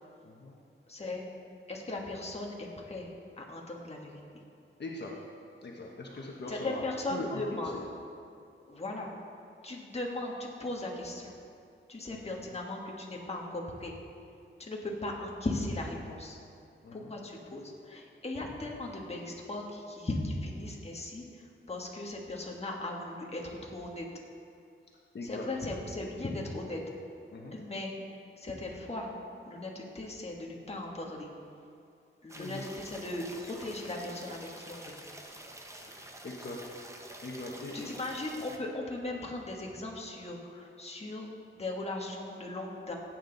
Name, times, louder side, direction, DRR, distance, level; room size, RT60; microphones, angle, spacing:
voice 1, 0.2-0.6 4.8-5.1 5.6-6.8 7.1-7.4 7.7-7.8 12.1-12.2 16.8-17.1 25.1-25.5 27.3-27.6 32.3-32.6 35.8-35.9 36.2-36.6 37.2-37.9, left 2 dB, 55° left, -2 dB, 1.2 m, -41 dB
voice 2, 0.9-1.3 1.7-3.1 3.4-4.2 6.1-7.7 8.7-9.1 9.6-11.3 11.9-13.9 14.6-16.4 16.9-24.1 25.2-26.8 27.5-29.1 29.5-31.3 32.2-35.0 37.7-41.3 41.5-42.9, left 2 dB, 30° left, -1 dB, 1.5 m, -38 dB
sound 1, 32.3-38.6, right 1 dB, 15° right, 0.9 m, -48 dB
16.5 x 8.9 x 4.0 m, 2.4 s
wide cardioid pair, 145°, 21 cm